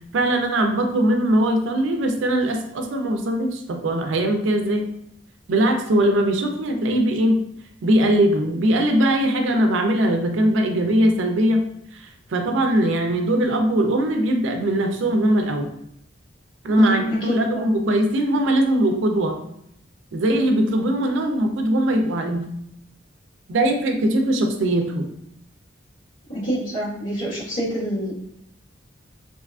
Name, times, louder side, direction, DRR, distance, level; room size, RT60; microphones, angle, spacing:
voice 1, 0.1-4.9 5.5-7.4 7.8-11.6 11.9-15.7 16.6-19.4 20.1-22.5 23.5-25.1, right 1 dB, 75° right, 4 dB, 0.4 m, -20 dB
voice 2, 16.8-17.7 26.3-28.1, right 1 dB, 70° left, -8 dB, 1.2 m, -27 dB
2.7 x 2.4 x 2.3 m, 0.74 s
head